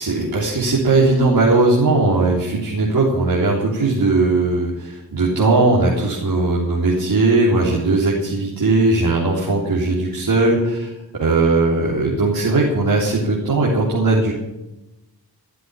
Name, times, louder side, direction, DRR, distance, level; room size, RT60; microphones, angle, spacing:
voice 1, 0.0-10.9 11.2-14.3, right 2 dB, 65° right, -5 dB, 3.6 m, -18 dB
15.0 x 7.6 x 9.6 m, 0.98 s
cardioid pair, 60°, 38 cm